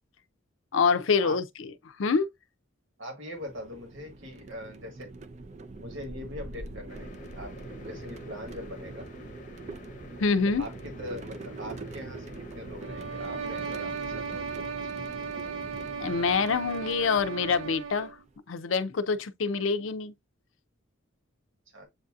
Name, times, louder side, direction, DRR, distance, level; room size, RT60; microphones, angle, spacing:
voice 1, 0.7-2.3 10.2-10.6 16.0-18.1 18.5-20.1, left 5 dB, 75° left, 0.5 m, -26 dB
voice 2, 3.0-5.1 5.7-7.5 7.8-9.0 10.6-15.5 21.7-21.9, equal, 70° right, 1.5 m, -42 dB
sound 1, 3.3-18.3, right 3 dB, 35° right, 0.4 m, -43 dB
sound 2, 6.9-13.9, left 2 dB, 40° left, 0.7 m, -48 dB
sound 3, 12.8-18.2, right 5 dB, 90° right, 0.6 m, -36 dB
7.9 x 2.7 x 2.4 m
head